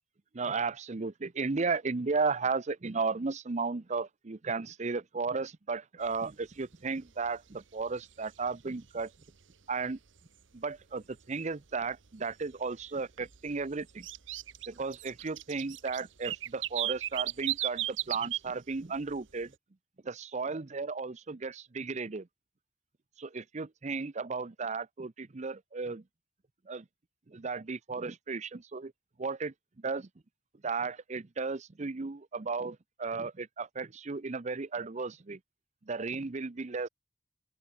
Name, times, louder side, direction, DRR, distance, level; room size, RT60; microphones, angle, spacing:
voice 1, 0.3-9.1 9.7-10.0 10.5-14.1 14.7-19.5 20.0-22.3 23.2-26.0 26.7-26.8 27.3-28.9 29.2-29.5 29.8-30.1 30.6-35.4 35.9-36.9, right 4 dB, 35° right, 0.6 m, -34 dB
sound 1, 6.0-6.1 6.5-6.7 7.1-7.5 8.0-9.2 9.5-9.6 10.2-10.3 10.8-10.9 11.2-11.3 11.7-12.5 12.8-18.5 18.7-19.2, right 14 dB, 80° right, 1.1 m, -36 dB
open air
head